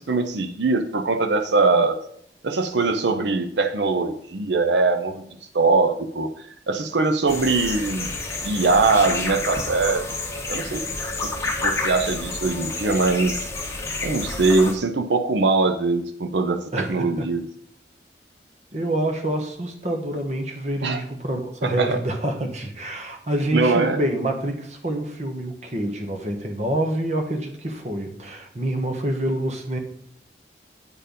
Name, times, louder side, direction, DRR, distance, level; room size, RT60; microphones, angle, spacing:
voice 1, 0.0-2.0 2.4-5.3 5.5-8.1 8.4-10.1 10.5-10.8 11.2-13.5 14.0-17.4 20.8-21.0 21.6-22.0 23.5-24.0, right 3 dB, 85° right, 8 dB, 0.6 m, -22 dB
sound 1, 7.3-14.7, left 3 dB, 15° left, 1.2 m, -29 dB
voice 2, 16.7-17.2 18.7-29.8, right 1 dB, 40° right, 4 dB, 1.2 m, -27 dB
8.8 x 4.4 x 5.2 m, 0.67 s
head